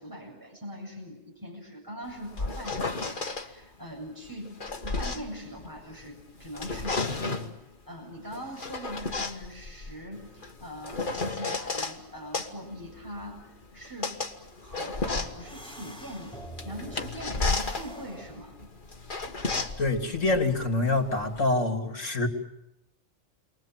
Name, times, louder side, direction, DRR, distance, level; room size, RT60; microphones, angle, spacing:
voice 1, 0.0-7.4 7.9-14.2 14.6-16.4 16.6-18.7, equal, 15° right, -2 dB, 7.6 m, -42 dB
sound 1, 2.1-3.5 4.3-6.1 6.4-7.6 8.3-12.0 12.3-21.4, left 3 dB, 40° left, 1.8 m, -33 dB
sound 2, 15.1-18.6, right 1 dB, 5° left, 4.4 m, -45 dB
voice 2, 19.8-22.3, left 2 dB, 70° left, 4 dB, 3.4 m, -26 dB
29.5 x 23.5 x 7.6 m, 0.86 s
omnidirectional pair, 1.3 m